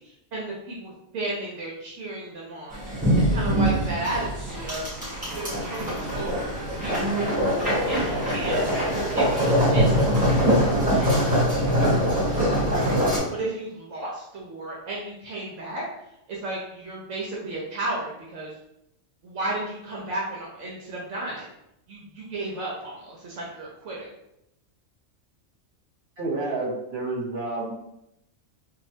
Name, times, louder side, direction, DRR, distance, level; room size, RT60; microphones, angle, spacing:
voice 1, 0.0-2.8 3.1-4.8 5.2-7.1 7.9-8.7 9.1-12.1 12.7-15.8 16.3-18.6 19.2-21.5 21.9-24.1, right 2 dB, 75° right, -4 dB, 1.0 m, -34 dB
sound 1, 2.7-13.2, equal, 5° right, 1.1 m, -23 dB
voice 2, 26.2-27.7, right 2 dB, 45° right, -6 dB, 1.2 m, -29 dB
3.1 x 2.5 x 2.7 m, 0.82 s
omnidirectional pair, 1.3 m